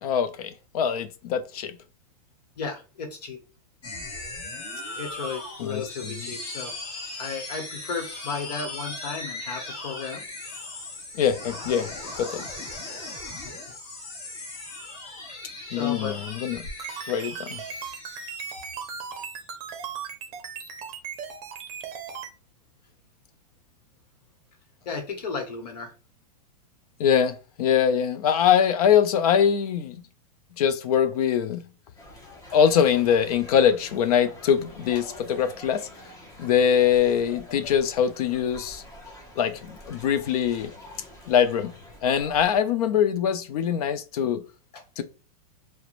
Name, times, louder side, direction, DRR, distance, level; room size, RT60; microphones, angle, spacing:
voice 1, 0.0-1.8 5.6-6.3 11.2-11.9 12.2-12.4 15.7-16.6 17.1-17.6 27.0-30.0 30.6-31.6 32.5-35.9 36.4-38.8 39.4-40.7 41.3-41.7 42.0-44.4 45.0-45.1, left 8 dB, 70° left, 0.5 m, -23 dB
voice 2, 2.6-3.4 5.0-6.8 7.2-10.2 13.4-13.5 15.3-15.4 15.7-16.2 24.8-25.9, left 5 dB, 85° left, 1.0 m, -34 dB
sound 1, 3.8-19.6, left 2 dB, 35° left, 1.1 m, -38 dB
sound 2, 16.5-22.3, right 6 dB, 35° right, 0.6 m, -37 dB
sound 3, 32.0-42.6, left 1 dB, 15° left, 0.7 m, -46 dB
2.4 x 2.1 x 3.0 m
supercardioid pair, 140°, 20 cm